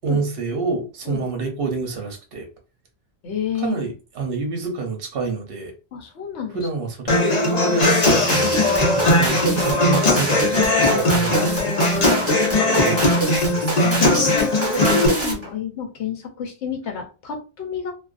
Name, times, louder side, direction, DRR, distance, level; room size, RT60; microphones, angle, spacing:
voice 1, 0.0-2.5 3.6-5.7 6.5-12.0 12.7-13.9, right 3 dB, 60° right, 0.9 m, -28 dB
voice 2, 3.2-3.7 5.9-6.6 9.7-9.8 12.0-12.8 13.8-14.8 15.1-17.9, left 7 dB, 85° left, 1.0 m, -30 dB
Human voice / Acoustic guitar, 7.1-15.1, left 2 dB, 45° left, 0.7 m, -19 dB
sound 1, 7.8-15.5, right 2 dB, 15° right, 0.9 m, -26 dB
2.4 x 2.4 x 2.4 m
omnidirectional pair, 1.1 m